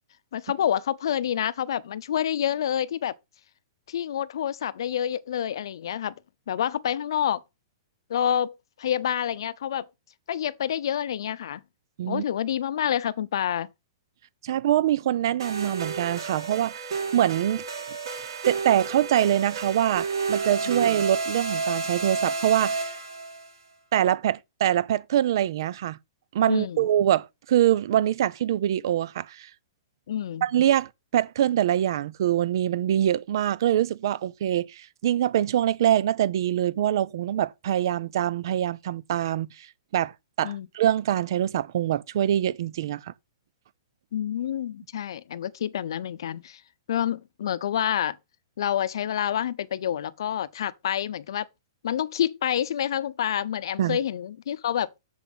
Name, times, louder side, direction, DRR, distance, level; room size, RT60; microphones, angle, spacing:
voice 1, 0.3-3.1 3.9-6.1 6.5-7.4 8.1-9.9 10.3-11.6 12.1-13.7 20.6-20.8 26.5-26.9 30.1-30.5 40.4-40.7 44.1-46.6 46.9-48.2 48.6-51.5 51.8-54.9, left 10 dB, 70° left, 0.7 m, -28 dB
voice 2, 14.4-17.6 18.4-23.0 23.9-26.0 26.3-29.5 30.4-39.7 39.9-40.1 40.4-43.1 53.8-54.0, right 11 dB, 60° right, 0.6 m, -24 dB
sound 1, 15.4-23.5, right 4 dB, 80° right, 3.6 m, -31 dB
7.2 x 7.1 x 4.0 m
hypercardioid pair, 150°, 2 cm